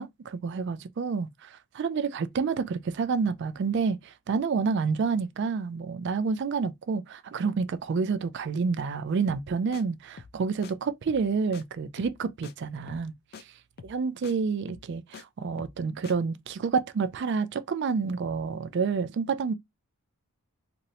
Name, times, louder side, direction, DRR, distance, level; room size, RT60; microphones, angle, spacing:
voice 1, 0.0-13.1 13.9-19.5, right 5 dB, 50° right, 0.3 m, -29 dB
sound 1, 9.3-9.5 9.7-9.8 10.2-10.4 10.6-10.7 11.1-11.3 11.5-11.6 12.0-12.2 12.4-12.5 12.9-13.1 13.3-13.4 13.8-14.0 14.2-14.3 14.7-15.2 15.6-15.8 16.0-16.1, left 6 dB, 45° left, 0.3 m, -46 dB
3.0 x 2.6 x 2.6 m
head